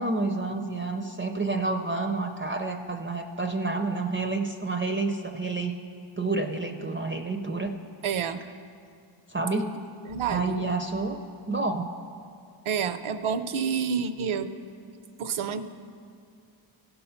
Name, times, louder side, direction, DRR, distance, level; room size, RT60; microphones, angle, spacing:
voice 1, 0.0-5.8 6.2-7.7 9.3-9.7 10.3-11.2 11.5-11.9, right 3 dB, 25° right, 4 dB, 0.4 m, -29 dB
voice 2, 8.0-8.4 10.1-10.6 12.7-14.5 15.2-15.6, right 7 dB, 75° right, 12 dB, 0.6 m, -28 dB
16.5 x 5.6 x 5.6 m, 2.3 s
wide cardioid pair, 125°, 49 cm